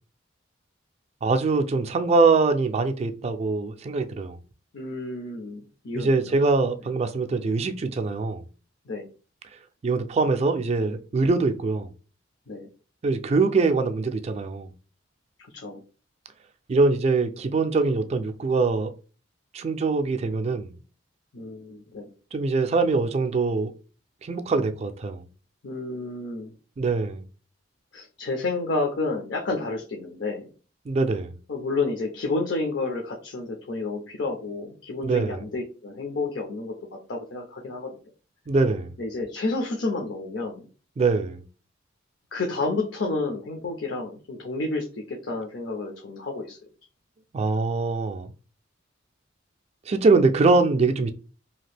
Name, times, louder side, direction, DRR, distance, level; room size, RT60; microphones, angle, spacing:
voice 1, 1.2-4.4 5.9-8.5 9.8-11.9 13.0-14.7 16.7-18.9 19.5-20.7 22.3-23.7 24.2-25.3 26.8-27.2 30.9-31.4 35.0-35.4 38.5-39.0 41.0-41.4 47.3-48.3 49.9-51.1, right 3 dB, 35° right, 0.3 m, -23 dB
voice 2, 4.7-6.4 8.9-9.1 12.5-12.7 15.5-15.8 21.3-22.1 25.6-26.5 27.9-30.5 31.5-36.7 37.1-37.9 39.0-40.7 42.3-46.6, left 3 dB, 60° left, 0.6 m, -30 dB
2.8 x 2.4 x 3.3 m
head